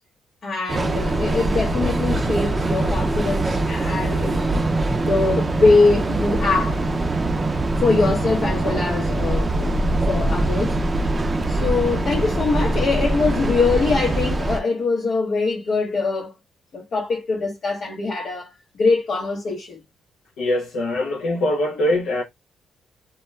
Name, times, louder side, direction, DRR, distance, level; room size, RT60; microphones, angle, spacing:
voice 1, 0.4-4.5 5.0-6.8 7.8-10.8 11.5-16.3 16.7-19.8, left 3 dB, 55° left, 0.8 m, -22 dB
Train, 0.7-14.6, right 2 dB, 25° right, 0.4 m, -23 dB
voice 2, 20.4-22.2, left 1 dB, 85° left, 0.5 m, -22 dB
2.2 x 2.1 x 3.1 m
cardioid pair, 90°, 0 cm